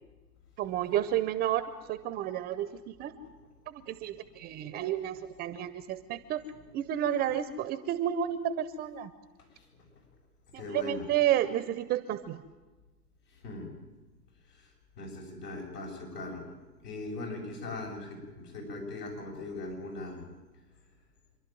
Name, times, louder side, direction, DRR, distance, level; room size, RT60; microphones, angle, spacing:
voice 1, 0.6-3.1 3.7-6.4 6.7-9.1 10.5-12.4, right 11 dB, 20° right, 12 dB, 0.6 m, -31 dB
voice 2, 10.6-11.1 13.3-13.7 14.5-14.7 15.0-16.5 16.8-20.3, left 2 dB, 70° left, 0 dB, 7.7 m, -40 dB
27.0 x 11.5 x 9.3 m, 1.2 s
hypercardioid pair, 125°, 49 cm